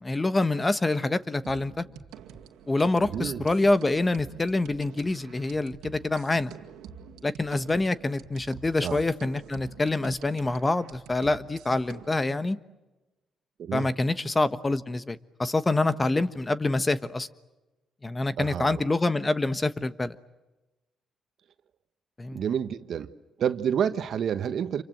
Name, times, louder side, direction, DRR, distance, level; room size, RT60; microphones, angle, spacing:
voice 1, 0.0-1.8 2.7-6.5 7.2-12.6 13.7-17.3 18.0-20.1 22.2-22.4, left 2 dB, 25° left, 14 dB, 1.3 m, -26 dB
sound 1, 1.4-12.2, right 7 dB, 85° right, 2.2 m, -47 dB
voice 2, 3.0-3.4 8.8-9.0 13.6-13.9 18.4-18.8 22.3-23.1 23.4-24.8, right 8 dB, 65° right, 11 dB, 1.3 m, -29 dB
28.0 x 24.5 x 7.9 m, 1.1 s
supercardioid pair, 65°, 0 cm